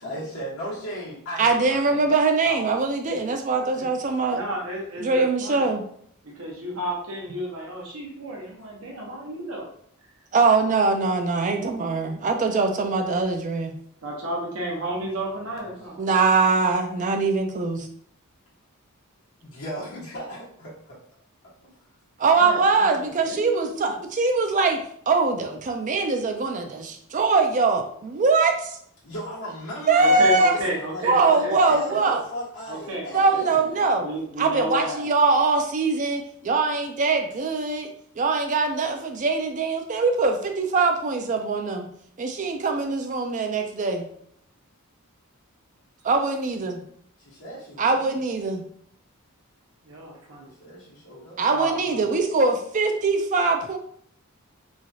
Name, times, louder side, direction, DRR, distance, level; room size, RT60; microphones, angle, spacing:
voice 1, 0.0-2.1 2.4-2.8 3.7-3.9 15.0-15.1 15.3-15.7 19.4-21.0 29.0-33.7 47.2-48.2 50.4-51.4, equal, 65° left, -7 dB, 1.3 m, -36 dB
voice 2, 1.4-4.4 5.0-5.8 10.3-13.7 16.0-17.9 22.2-28.8 29.9-30.5 31.0-32.2 33.1-34.1 34.4-41.9 42.2-44.1 46.0-46.8 47.8-48.6 51.4-53.8, right 3 dB, 35° right, 4 dB, 0.4 m, -22 dB
voice 3, 4.3-5.7 6.2-9.7 14.0-16.0 22.3-23.9 30.0-32.0 32.7-33.4 33.8-35.0 49.8-50.5 51.5-52.1, right 1 dB, 60° right, -2 dB, 0.8 m, -32 dB
3.0 x 2.4 x 2.6 m, 0.64 s
head